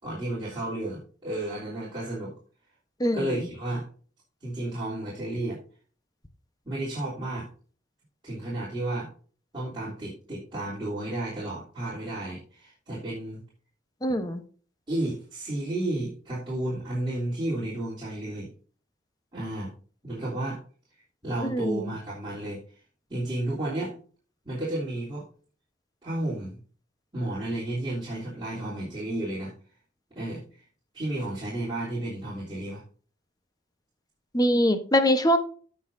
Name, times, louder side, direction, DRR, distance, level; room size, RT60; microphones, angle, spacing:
voice 1, 0.0-2.3 3.1-3.9 4.4-5.6 6.6-7.5 8.2-9.1 9.5-13.4 14.9-18.5 19.3-19.7 20.0-20.6 21.2-22.6 23.1-23.9 24.4-25.2 26.0-26.6 27.1-29.5 30.1-30.4 30.9-32.8, right 1 dB, 25° right, -8 dB, 3.3 m, -32 dB
voice 2, 3.0-3.4 14.0-14.4 21.4-21.9 34.3-35.4, equal, 20° left, 8 dB, 1.0 m, -23 dB
15.5 x 5.6 x 2.7 m, 0.41 s
head